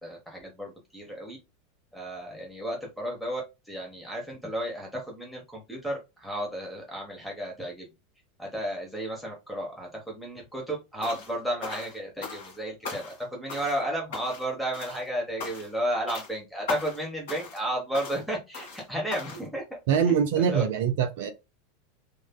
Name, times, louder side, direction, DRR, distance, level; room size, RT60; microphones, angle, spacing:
voice 1, 0.0-1.4 1.9-7.9 8.4-19.6 20.0-20.6, right 1 dB, ahead, 1.0 m, -33 dB
sound 1, 11.0-11.3 11.6-12.6 12.8-13.2 13.5-13.8 14.1-14.5 14.7-15.1 15.4-15.8 16.1-16.3 16.7-17.0 17.3-17.6 17.9-18.2 18.5-18.8 19.1-19.5, left 4 dB, 55° left, 1.8 m, -38 dB
voice 2, 19.9-21.3, right 8 dB, 55° right, 0.4 m, -23 dB
3.4 x 2.5 x 2.2 m
figure-of-eight pair, 85°, 0 cm